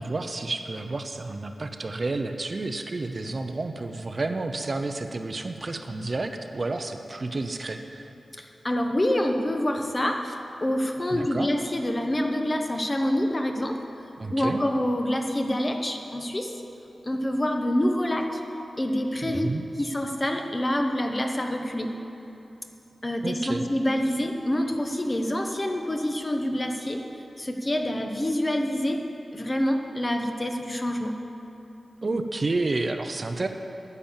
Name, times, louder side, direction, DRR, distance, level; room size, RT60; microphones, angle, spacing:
voice 1, 0.0-8.1 11.1-11.5 14.2-14.6 19.2-19.7 23.2-23.6 32.0-33.5, right 2 dB, 40° right, 7 dB, 0.6 m, -30 dB
voice 2, 8.4-13.8 14.3-16.5 17.0-18.4 18.8-19.5 19.8-21.9 23.0-27.0 27.4-29.0 29.3-31.2, left 1 dB, 25° left, 4 dB, 1.0 m, -26 dB
10.5 x 9.9 x 7.3 m, 3.0 s
wide cardioid pair, 115°, 0 cm